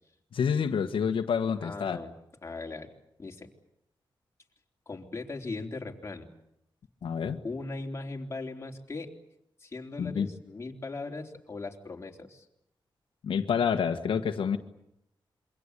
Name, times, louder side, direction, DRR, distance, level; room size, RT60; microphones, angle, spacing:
voice 1, 0.3-2.0 7.0-7.4 10.0-10.3 13.2-14.6, left 7 dB, 90° left, 6 dB, 1.6 m, -28 dB
voice 2, 1.6-2.1 2.4-2.9 3.2-3.5 4.9-6.3 7.4-9.1 9.6-12.5, left 3 dB, 30° left, 1 dB, 3.8 m, -38 dB
27.0 x 24.0 x 8.4 m, 0.81 s
wide cardioid pair, 110°, 9 cm